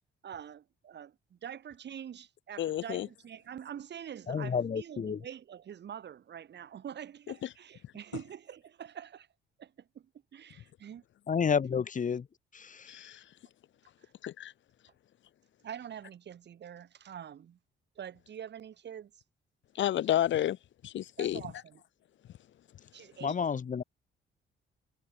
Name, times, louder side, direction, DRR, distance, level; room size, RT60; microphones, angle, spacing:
voice 1, 0.2-9.3 9.6-10.1 10.3-11.0 15.6-17.6 18.0-19.1 21.2-21.8 22.9-23.4, right 9 dB, 60° right, 6.5 m, -45 dB
voice 2, 2.6-3.1 12.9-13.2 14.2-14.5 19.7-20.6 20.8-21.4, left 12 dB, 70° left, 1.4 m, -30 dB
voice 3, 4.3-5.2 11.3-12.2 23.2-23.8, left 6 dB, 40° left, 1.5 m, -30 dB
cardioid pair, 90°, 20 cm